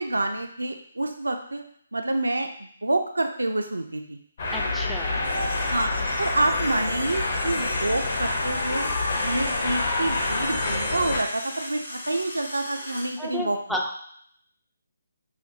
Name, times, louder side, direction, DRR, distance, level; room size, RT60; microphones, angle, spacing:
voice 1, 0.0-1.6 1.9-4.2 5.7-8.9 9.2-13.6, right 2 dB, 75° right, 5 dB, 0.4 m, -28 dB
sound 1, 4.4-11.2, left 2 dB, 45° left, 0.7 m, -27 dB
voice 2, 4.5-5.2 13.2-13.8, left 1 dB, ahead, -1 dB, 0.3 m, -32 dB
sound 2, 5.2-13.2, left 1 dB, 60° left, 1.1 m, -37 dB
5.6 x 2.0 x 2.8 m, 0.64 s
figure-of-eight pair, 145°, 0 cm